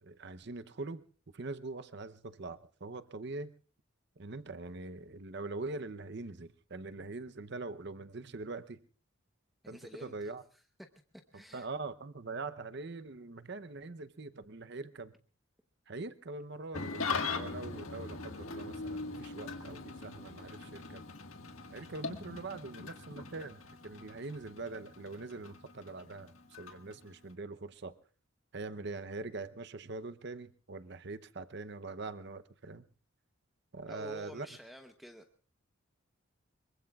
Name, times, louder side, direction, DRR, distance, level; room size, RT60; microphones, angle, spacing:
voice 1, 0.0-1.1 1.3-3.5 4.2-8.8 9.7-10.4 11.5-15.1 15.9-21.0 21.7-28.0 28.5-32.9 33.7-34.5, right 3 dB, 55° right, 0.7 m, -43 dB
voice 2, 9.6-10.3 11.3-11.7 33.9-35.2, equal, ahead, 0.9 m, -49 dB
Engine starting / Idling, 16.7-27.3, left 4 dB, 80° left, 1.7 m, -41 dB
24.5 x 23.0 x 2.4 m
head